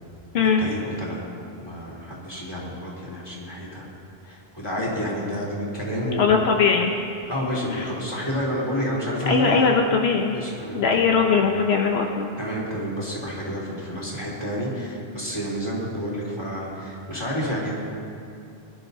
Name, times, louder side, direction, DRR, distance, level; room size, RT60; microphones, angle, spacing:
voice 1, 0.6-1.2 1.6-3.9 4.2-6.2 7.3-9.7 10.3-11.1 12.4-17.7, equal, 25° left, -7 dB, 3.2 m, -29 dB
voice 2, 6.2-6.9 7.7-7.8 9.3-10.3 10.7-12.3, left 5 dB, 80° left, 2 dB, 1.0 m, -20 dB
22.5 x 11.5 x 2.7 m, 2.5 s
omnidirectional pair, 1.1 m